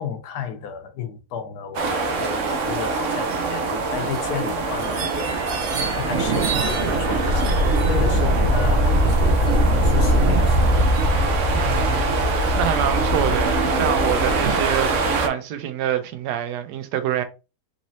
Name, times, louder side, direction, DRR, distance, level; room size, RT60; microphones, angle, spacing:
voice 1, 0.0-10.7, left 7 dB, 75° left, 1.3 m, -33 dB
sound 1, 1.7-15.3, right 2 dB, 60° right, 0.9 m, -21 dB
voice 2, 11.5-14.9 15.2-17.2, right 10 dB, 80° right, 1.2 m, -26 dB
4.0 x 3.2 x 2.7 m
omnidirectional pair, 1.8 m